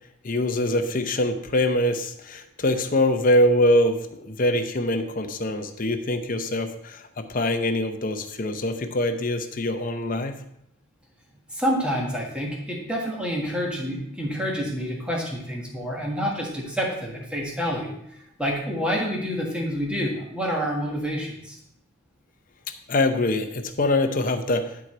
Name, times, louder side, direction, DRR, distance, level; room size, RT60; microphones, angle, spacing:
voice 1, 0.2-10.3 22.9-24.7, left 1 dB, 40° left, 7 dB, 0.7 m, -24 dB
voice 2, 11.5-21.6, equal, 5° right, -2 dB, 1.6 m, -28 dB
10.5 x 4.8 x 4.3 m, 0.76 s
head